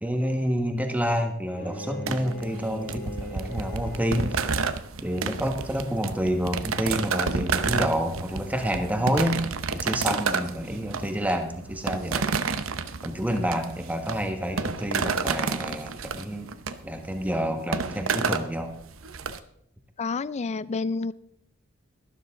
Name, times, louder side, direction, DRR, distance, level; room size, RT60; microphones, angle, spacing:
voice 1, 0.0-4.5 5.0-9.4 9.7-12.3 13.0-16.5 16.8-18.7, equal, 10° right, 5 dB, 1.4 m, -28 dB
Bowed string instrument, 1.5-4.7, left 1 dB, 55° left, 2.0 m, -39 dB
sound 1, 2.1-19.4, right 5 dB, 80° right, 0.8 m, -30 dB
voice 2, 20.0-21.1, left 4 dB, 35° left, 19 dB, 0.4 m, -29 dB
12.5 x 12.0 x 3.7 m, 0.73 s
head